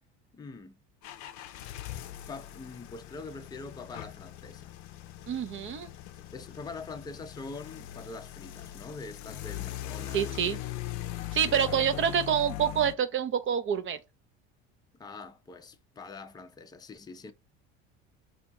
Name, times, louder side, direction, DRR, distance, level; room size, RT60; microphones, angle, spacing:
voice 1, 0.3-0.8 2.3-4.7 6.3-10.6 11.5-12.0 15.0-17.3, left 3 dB, 15° left, 0.5 m, -44 dB
sound 1, 1.0-12.9, left 13 dB, 60° left, 0.5 m, -41 dB
voice 2, 5.3-5.9 10.1-10.6 11.3-14.0, right 8 dB, 40° right, 0.5 m, -27 dB
3.4 x 2.8 x 2.9 m
supercardioid pair, 100°, 32 cm